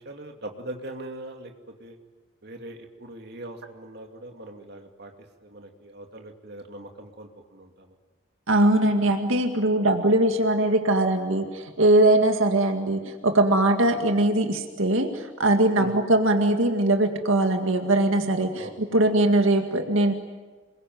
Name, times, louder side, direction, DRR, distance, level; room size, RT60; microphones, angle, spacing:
voice 1, 0.0-1.5 1.8-2.0 2.4-5.1 5.4-8.0 15.8-16.0 18.6-19.0, right 1 dB, 50° right, 3 dB, 2.6 m, -41 dB
voice 2, 8.5-20.1, right 1 dB, 80° right, 5 dB, 2.0 m, -21 dB
27.5 x 22.0 x 9.5 m, 1.3 s
head